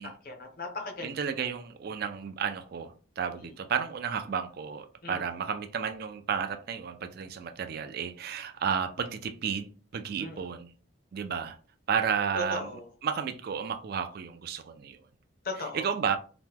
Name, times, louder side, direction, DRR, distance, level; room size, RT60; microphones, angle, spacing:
voice 1, 0.0-1.1 1.4-1.5 5.0-5.2 10.2-10.5 12.3-12.9 15.4-15.9, left 2 dB, 45° left, 0.7 m, -37 dB
voice 2, 1.0-10.7 11.1-11.6 11.9-12.7 13.0-15.0 15.7-16.2, right 7 dB, 45° right, 0.3 m, -32 dB
2.9 x 2.1 x 3.5 m
head